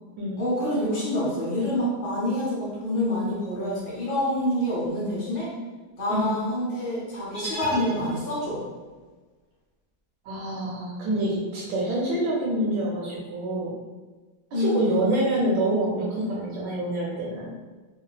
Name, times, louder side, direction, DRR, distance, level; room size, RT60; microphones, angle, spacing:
voice 1, 0.4-5.5 6.0-8.6 14.5-15.1, left 1 dB, 20° left, -8 dB, 0.5 m, -27 dB
sound 1, 7.3-8.6, right 1 dB, 30° right, 0.9 m, -35 dB
voice 2, 10.2-13.8 14.5-17.5, right 1 dB, 75° right, -5 dB, 1.3 m, -26 dB
3.2 x 2.3 x 2.2 m, 1.3 s
omnidirectional pair, 2.2 m